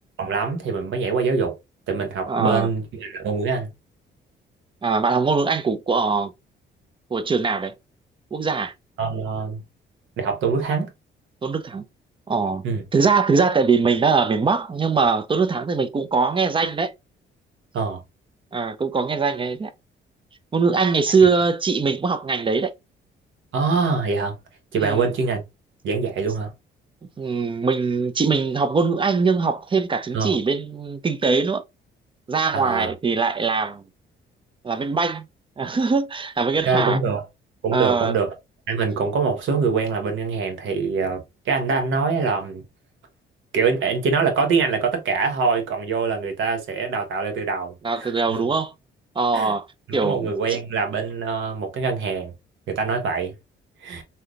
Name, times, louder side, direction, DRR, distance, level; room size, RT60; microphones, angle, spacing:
voice 1, 0.2-1.5 1.9-3.7 9.0-9.6 10.2-10.9 12.6-12.8 17.7-18.0 23.5-24.3 24.7-25.4 25.8-26.5 30.1-30.4 32.5-32.9 36.6-37.2 37.6-38.3 38.7-42.6 43.5-47.7 48.0-48.4 49.3-49.5 49.9-52.3 52.7-53.3 53.8-54.0, right 5 dB, 75° right, 1.1 m, -24 dB
voice 2, 2.3-2.7 4.8-6.3 7.1-7.7 8.3-8.7 11.4-11.9 12.3-12.6 12.9-16.9 18.5-19.7 20.5-22.7 24.8-25.1 27.2-31.6 32.3-33.8 34.6-35.3 35.6-37.0 37.7-38.1 47.8-48.7 49.2-49.7 49.9-50.6, right 4 dB, 25° right, 0.5 m, -22 dB
3.3 x 2.8 x 2.3 m
cardioid pair, 90°, 20 cm